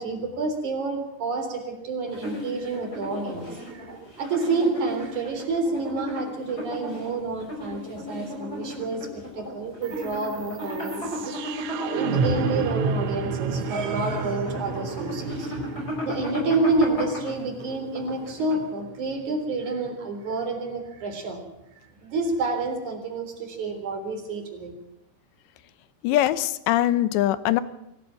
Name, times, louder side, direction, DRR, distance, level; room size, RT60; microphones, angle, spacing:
voice 1, 0.0-11.5 11.9-15.5 16.0-21.4 22.0-24.7, right 3 dB, 45° right, 4 dB, 4.7 m, -29 dB
sound 1, 2.1-18.9, left 1 dB, 20° left, 5.4 m, -35 dB
sound 2, 9.8-19.9, right 5 dB, 85° right, 3.6 m, -31 dB
voice 2, 26.0-27.6, left 13 dB, 80° left, 14 dB, 3.0 m, -22 dB
24.5 x 14.0 x 7.6 m, 0.86 s
omnidirectional pair, 5.3 m